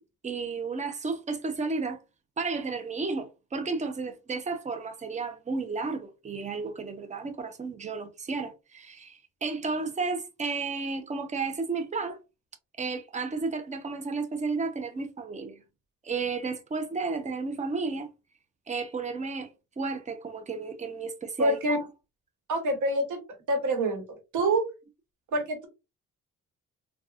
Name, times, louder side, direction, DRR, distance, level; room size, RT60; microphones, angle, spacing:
voice 1, 0.2-2.0 2.4-12.2 12.8-15.6 16.0-18.1 18.7-19.5 19.8-21.8, right 4 dB, 25° right, 0.6 m, -32 dB
voice 2, 21.4-21.8 22.5-23.2 23.5-24.0 24.3-24.6 25.3-25.7, right 1 dB, 80° right, 1.3 m, -26 dB
3.9 x 2.3 x 2.4 m
cardioid pair, 90°, 30 cm